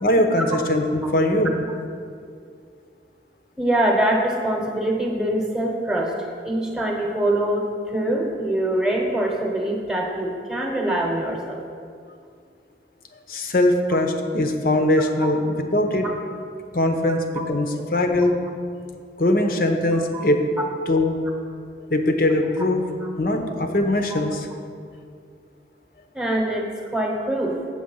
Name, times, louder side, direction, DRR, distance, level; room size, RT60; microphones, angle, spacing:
voice 1, 0.0-1.6 13.3-16.1 16.7-18.4 19.2-20.5 20.9-21.2 21.9-22.8 23.2-24.5, left 1 dB, 55° left, 5 dB, 0.8 m, -21 dB
voice 2, 3.6-6.1 6.4-11.6 15.2-15.3 16.0-16.1 20.6-20.7 26.1-26.7 26.9-27.6, right 1 dB, 5° right, 0 dB, 1.0 m, -23 dB
7.8 x 6.7 x 5.5 m, 2.3 s
head